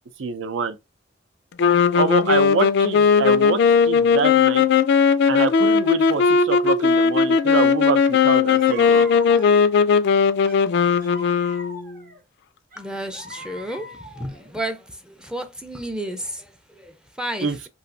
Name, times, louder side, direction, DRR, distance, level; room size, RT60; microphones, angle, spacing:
voice 1, 0.2-0.8 1.9-4.7 5.3-9.1 17.4-17.7, right 4 dB, 75° right, 0.5 m, -25 dB
sound 1, 1.6-12.0, left 6 dB, 60° left, 0.3 m, -18 dB
sound 2, 8.0-8.2 8.5-9.9 10.4-12.2 12.7-14.5, right 2 dB, 45° right, 0.8 m, -40 dB
voice 2, 12.8-17.7, right 1 dB, 5° right, 0.4 m, -32 dB
3.1 x 2.6 x 2.5 m
head